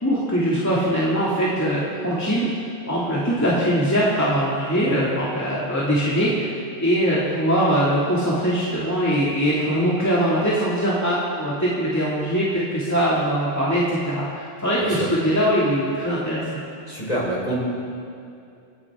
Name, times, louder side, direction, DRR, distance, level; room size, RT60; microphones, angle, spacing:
voice 1, 0.0-2.5 2.9-6.5 6.8-16.6, equal, 15° left, -8 dB, 2.4 m, -22 dB
voice 2, 16.9-17.6, right 1 dB, 40° left, -5 dB, 4.3 m, -26 dB
29.0 x 11.0 x 3.7 m, 2.5 s
omnidirectional pair, 1.0 m